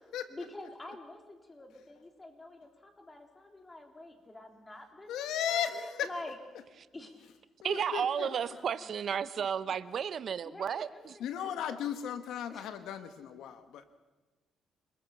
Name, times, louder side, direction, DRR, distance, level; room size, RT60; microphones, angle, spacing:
voice 1, 0.3-6.4 6.9-7.3 8.2-9.0 10.4-12.1 12.5-12.7, left 2 dB, 20° left, 4 dB, 3.9 m, -48 dB
voice 2, 5.1-6.1 7.6-8.3 11.2-14.0, left 9 dB, 80° left, 10 dB, 1.4 m, -36 dB
voice 3, 7.6-11.1, right 7 dB, 60° right, 15 dB, 0.8 m, -33 dB
28.0 x 20.0 x 6.0 m, 1.2 s
cardioid pair, 90°, 0 cm